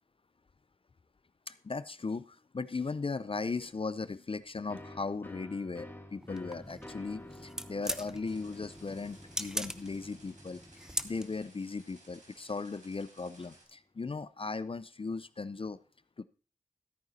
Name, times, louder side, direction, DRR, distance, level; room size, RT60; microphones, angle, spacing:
voice 1, 1.5-15.8 16.2-16.3, left 4 dB, 40° left, 15 dB, 0.5 m, -37 dB
sound 1, 4.7-12.2, left 1 dB, 15° left, 1.4 m, -51 dB
sound 2, 6.2-11.5, equal, 5° right, 0.7 m, -41 dB
sound 3, 8.2-13.6, right 1 dB, 65° right, 4.3 m, -59 dB
13.5 x 9.0 x 4.1 m, 0.38 s
wide cardioid pair, 70°, 14 cm